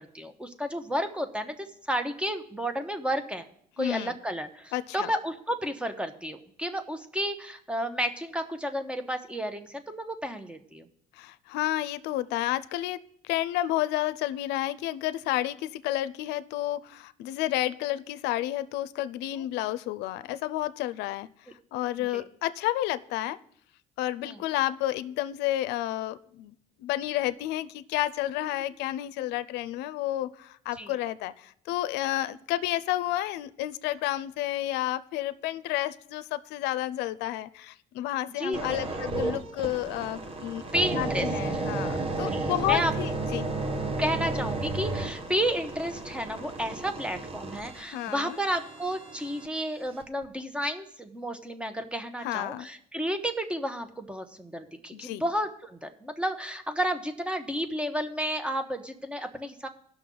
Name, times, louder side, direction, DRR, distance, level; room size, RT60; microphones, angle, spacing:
voice 1, 0.0-3.5 3.8-10.9 22.0-22.2 24.2-24.4 30.8-30.9 38.4-39.0 40.7-41.3 42.3-42.9 44.0-59.7, equal, 5° right, 8 dB, 1.0 m, -32 dB
voice 2, 3.8-4.2 4.7-5.1 11.2-21.3 21.7-23.4 24.0-26.5 26.8-40.6 40.9-43.5 47.9-48.4 52.2-52.7 54.9-55.2, left 14 dB, 90° left, 14 dB, 0.5 m, -31 dB
sound 1, 38.5-49.5 50.0-50.2, right 2 dB, 35° right, 1.3 m, -33 dB
17.5 x 6.2 x 3.9 m, 0.66 s
cardioid pair, 110°, 17 cm